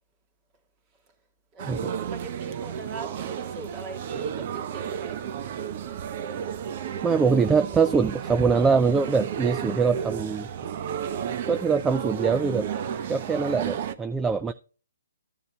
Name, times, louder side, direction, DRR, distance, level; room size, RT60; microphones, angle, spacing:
sound 1, 1.6-13.9, right 8 dB, 40° right, 0.8 m, -32 dB
voice 1, 2.1-5.2, right 3 dB, 25° right, 2.1 m, -41 dB
voice 2, 7.0-10.5 11.5-12.7 13.1-14.5, right 5 dB, 10° right, 0.4 m, -23 dB
15.0 x 7.0 x 2.3 m
hypercardioid pair, 145°, 0 cm